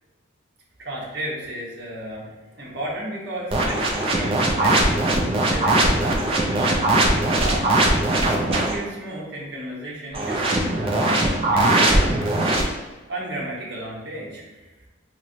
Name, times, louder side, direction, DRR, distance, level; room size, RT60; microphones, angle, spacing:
voice 1, 0.8-7.7 8.5-12.2 13.1-14.7, right 1 dB, 55° right, -5 dB, 0.9 m, -33 dB
sound 1, 3.5-8.8 10.1-12.6, right 1 dB, 30° right, 0.4 m, -20 dB
3.1 x 3.0 x 2.7 m, 1.2 s
head